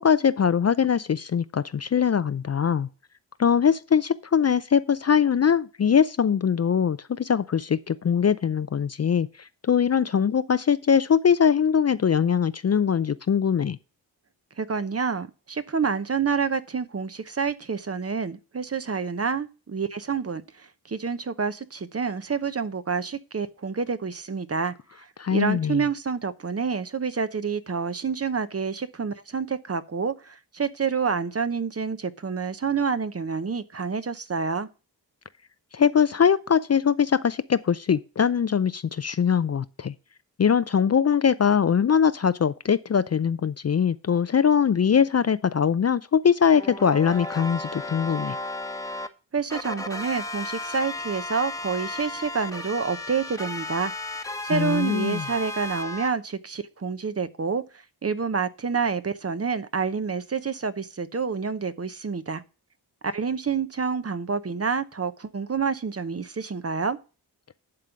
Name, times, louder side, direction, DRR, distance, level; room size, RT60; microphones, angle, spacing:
voice 1, 0.0-2.9 3.4-13.8 25.2-25.8 35.7-39.9 40.4-48.4 54.5-55.2, left 7 dB, 35° left, 0.5 m, -22 dB
voice 2, 14.6-34.7 49.3-53.9 54.4-57.6 58.0-62.4 63.0-67.0, right 5 dB, 35° right, 0.8 m, -28 dB
sound 1, 46.5-49.1 49.5-56.1, left 2 dB, 10° left, 1.1 m, -34 dB
11.0 x 3.8 x 6.8 m
cardioid pair, 45°, 43 cm